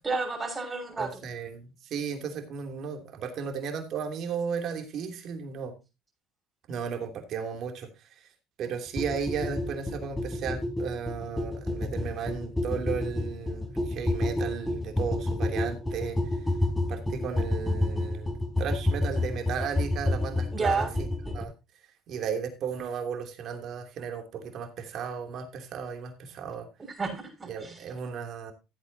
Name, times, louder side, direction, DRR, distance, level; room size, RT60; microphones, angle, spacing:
voice 1, 0.0-1.2 20.5-20.9 27.0-27.8, right 4 dB, 25° right, 1 dB, 6.1 m, -30 dB
voice 2, 1.0-5.7 6.7-7.9 8.2-8.3 8.6-16.2 16.9-20.9 21.3-21.5 22.1-26.7 27.5-28.5, right 6 dB, 60° right, 5 dB, 3.0 m, -35 dB
sound 1, 9.0-21.4, left 1 dB, 10° left, 4.2 m, -29 dB
15.0 x 8.9 x 2.8 m, 0.26 s
supercardioid pair, 90°, 0 cm